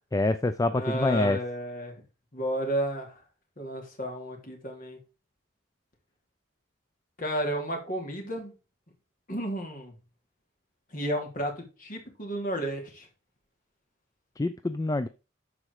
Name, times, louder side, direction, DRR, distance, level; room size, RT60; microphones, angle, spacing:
voice 1, 0.1-1.4 14.4-15.1, left 2 dB, 15° left, 11 dB, 0.4 m, -26 dB
voice 2, 0.7-2.0 2.3-3.2 3.6-5.0 7.2-8.5 9.3-10.0 10.9-13.1, equal, 40° left, 3 dB, 3.0 m, -32 dB
12.0 x 4.9 x 4.8 m, 0.31 s
head